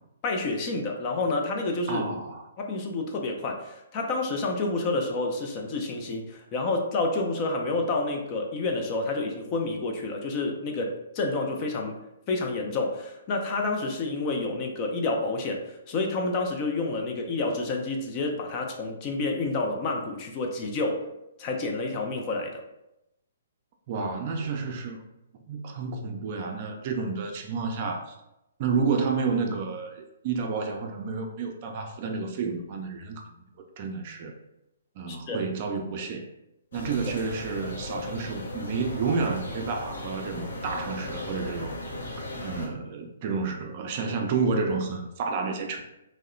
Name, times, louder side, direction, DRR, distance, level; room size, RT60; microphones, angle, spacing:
voice 1, 0.2-2.1 2.6-12.0 12.3-21.0 21.4-22.6 35.1-35.4, left 3 dB, 35° left, 2 dB, 0.4 m, -29 dB
voice 2, 1.9-2.4 23.9-25.0 25.5-28.1 28.6-33.4 33.8-34.3 35.0-36.3 36.7-41.7 42.2-45.8, right 4 dB, 45° right, 3 dB, 0.3 m, -30 dB
sound 1, 36.7-42.7, left 1 dB, 75° left, 0.6 m, -37 dB
2.7 x 2.0 x 2.5 m, 0.89 s
hypercardioid pair, 135°, 0 cm